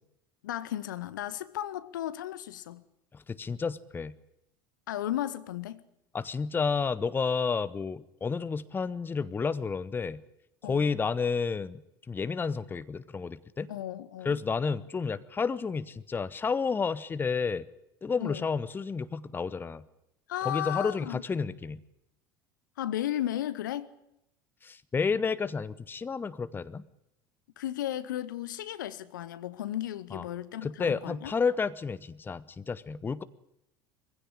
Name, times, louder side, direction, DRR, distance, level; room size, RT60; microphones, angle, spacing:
voice 1, 0.4-2.8 4.9-5.8 10.6-10.8 13.7-14.4 18.2-18.4 20.3-21.2 22.8-23.9 27.6-31.3, left 12 dB, 65° left, 1.0 m, -34 dB
voice 2, 3.1-4.1 6.1-10.2 10.6-11.8 12.1-13.7 14.2-17.6 18.0-19.8 20.4-21.8 24.6-26.8 30.1-30.2 30.6-33.2, left 5 dB, 20° left, 0.9 m, -31 dB
23.0 x 16.0 x 10.0 m
figure-of-eight pair, 70°, 11 cm